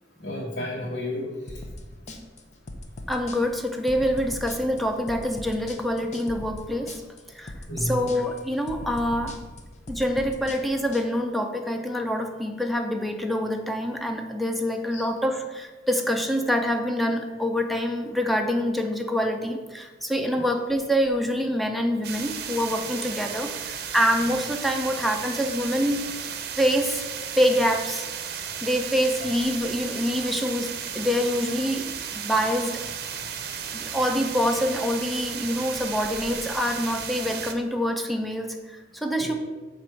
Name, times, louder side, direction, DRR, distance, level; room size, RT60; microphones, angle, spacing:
voice 1, 0.2-1.6 7.7-8.0 14.9-15.0 20.3-20.4 39.2-39.3, left 1 dB, 90° left, -5 dB, 1.2 m, -32 dB
sound 1, 1.5-11.1, left 1 dB, 40° left, 0.7 m, -39 dB
voice 2, 3.1-7.0 7.3-9.4 9.9-26.0 26.6-27.1 27.4-28.1 28.6-31.9 32.2-32.8 33.7-39.3, equal, ahead, 4 dB, 0.5 m, -26 dB
sound 2, 22.0-37.5, right 7 dB, 60° right, 0.6 m, -34 dB
7.7 x 2.6 x 5.9 m, 1.3 s
head